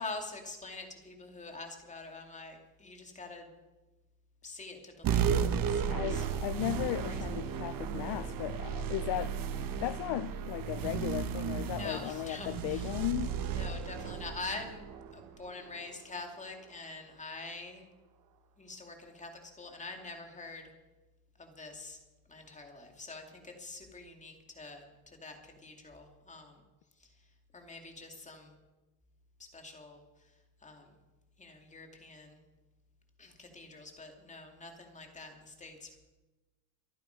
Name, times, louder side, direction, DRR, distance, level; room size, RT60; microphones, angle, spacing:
voice 1, 0.0-3.5 4.4-6.3 7.1-7.2 7.5-7.6 11.7-12.9 13.5-17.9 18.6-20.7 21.4-22.0 22.3-26.6 27.0-27.1 27.5-28.6 29.4-30.3 30.6-30.9 31.4-32.4 33.2-36.0, left 3 dB, 15° left, 2.3 m, -45 dB
sound 1, 5.0-15.9, right 7 dB, 45° right, 1.2 m, -34 dB
voice 2, 5.9-9.4 9.8-13.4, left 17 dB, 60° left, 0.5 m, -36 dB
24.5 x 9.1 x 5.1 m
cardioid pair, 150°, 47 cm